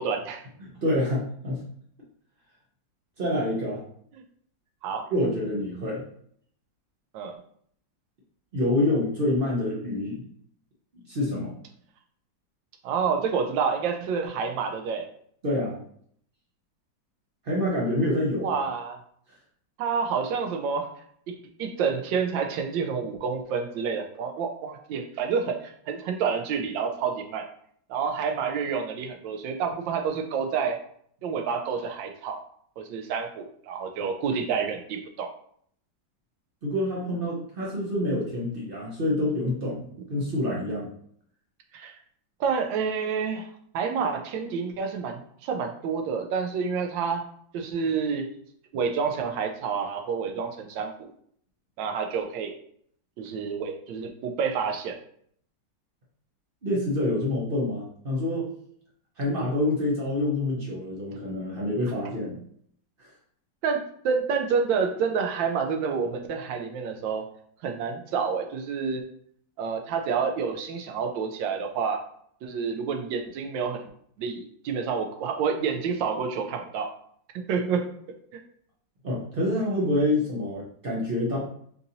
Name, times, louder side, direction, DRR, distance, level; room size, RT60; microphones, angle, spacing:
voice 1, 0.0-0.4 4.8-5.1 7.1-7.3 12.8-15.1 18.4-19.0 19.8-20.9 21.3-27.4 27.9-30.8 31.2-32.4 32.8-35.3 41.7-41.9 42.4-48.3 48.7-51.1 51.8-52.5 53.2-54.9 63.6-67.3 67.6-69.0 69.6-72.0 72.4-73.9 74.2-76.9 77.5-77.9, right 6 dB, 85° right, 4 dB, 1.3 m, -28 dB
voice 2, 0.6-1.6 3.2-3.8 5.1-6.0 8.5-10.2 11.1-11.5 15.4-15.8 17.4-18.6 36.6-40.9 56.6-58.5 59.2-62.4 63.0-63.1 79.0-81.4, left 1 dB, 65° right, -4 dB, 0.5 m, -27 dB
3.9 x 2.6 x 2.7 m, 0.63 s
omnidirectional pair, 2.0 m